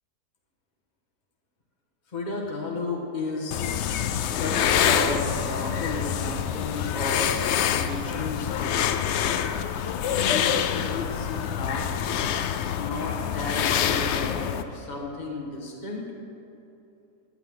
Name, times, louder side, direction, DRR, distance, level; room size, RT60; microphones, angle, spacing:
voice 1, 2.1-3.6 4.2-8.8 10.0-11.9 12.7-16.1, left 2 dB, 30° left, -2 dB, 1.6 m, -33 dB
sound 1, 3.5-14.6, left 9 dB, 75° left, 0.6 m, -26 dB
sound 2, 5.9-15.0, left 1 dB, 45° left, 1.8 m, -46 dB
15.0 x 10.5 x 3.8 m, 2.8 s
omnidirectional pair, 1.7 m